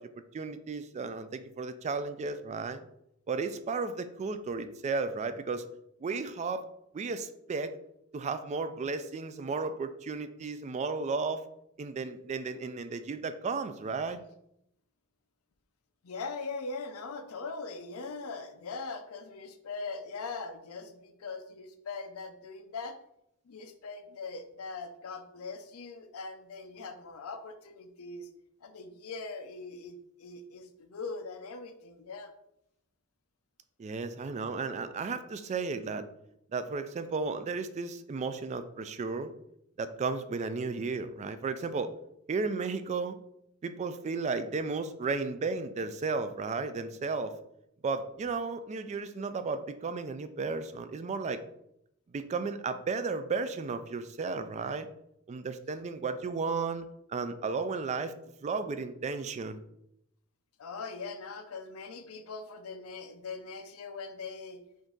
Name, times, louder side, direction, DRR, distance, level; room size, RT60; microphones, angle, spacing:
voice 1, 0.0-2.8 3.3-5.6 6.0-6.7 6.9-7.7 8.1-11.4 11.8-14.2 33.8-36.1 36.5-39.3 39.8-41.9 42.3-43.2 43.6-47.3 47.8-51.4 52.1-54.9 55.3-58.1 58.4-59.6, right 4 dB, 35° right, 11 dB, 0.3 m, -34 dB
voice 2, 16.0-23.0 23.5-28.3 28.6-32.3 60.6-64.6, left 4 dB, 90° left, 8 dB, 0.6 m, -41 dB
5.0 x 2.6 x 3.8 m, 0.78 s
head